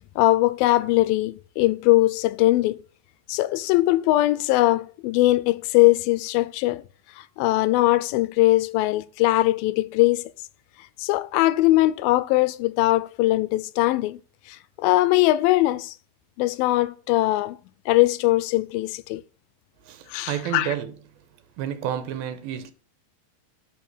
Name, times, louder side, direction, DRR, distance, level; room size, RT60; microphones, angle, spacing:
voice 1, 0.2-2.8 3.3-6.8 7.2-10.3 11.0-14.2 14.5-15.9 16.4-17.6 17.9-19.2 20.1-20.7, left 17 dB, 85° left, 2.4 m, -21 dB
voice 2, 19.8-22.7, right 10 dB, 85° right, 2.7 m, -31 dB
10.5 x 4.6 x 6.2 m
omnidirectional pair, 4.2 m